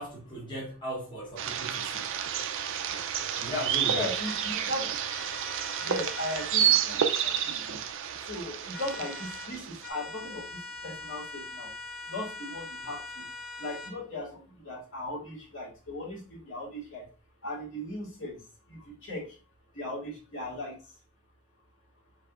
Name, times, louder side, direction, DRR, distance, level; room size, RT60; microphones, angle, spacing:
voice 1, 0.0-2.1 3.4-4.2, equal, 20° left, 1.0 m, -37 dB
sound 1, 1.4-9.9, right 9 dB, 65° right, 0.4 m, -30 dB
voice 2, 2.1-3.5 3.8-11.7 12.0-13.3 13.5-17.1 17.4-19.4 19.7-21.0, left 1 dB, 65° left, 2.0 m, -38 dB
sound 2, 4.2-4.5 5.1-6.5 8.7-9.5 9.8-14.0, left 2 dB, 5° left, 0.6 m, -42 dB
4.7 x 2.7 x 2.4 m
head